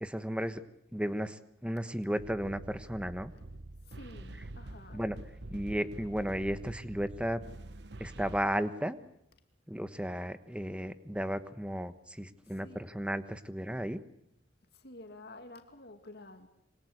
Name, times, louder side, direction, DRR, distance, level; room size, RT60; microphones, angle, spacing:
voice 1, 0.0-0.6 0.9-3.3 4.9-5.2 5.5-7.4 8.0-9.0 9.7-14.0, equal, 5° right, 1.2 m, -34 dB
sound 1, 2.2-8.5, right 2 dB, 65° right, 1.0 m, -46 dB
voice 2, 3.8-5.0 12.4-12.9 14.7-16.5, left 2 dB, 60° left, 2.5 m, -51 dB
27.0 x 24.5 x 8.0 m
head